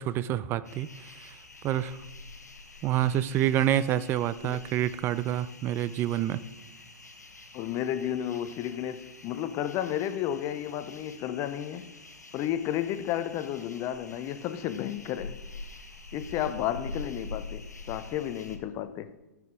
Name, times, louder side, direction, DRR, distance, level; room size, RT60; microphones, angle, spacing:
voice 1, 0.0-1.4 1.6-2.0 2.8-6.4, right 12 dB, 25° right, 0.3 m, -28 dB
sound 1, 0.6-18.6, left 3 dB, 90° left, 1.0 m, -46 dB
voice 2, 7.5-11.9 12.3-15.4 16.1-19.1, left 11 dB, 35° left, 0.6 m, -32 dB
13.0 x 5.9 x 3.7 m
figure-of-eight pair, 105°, 9 cm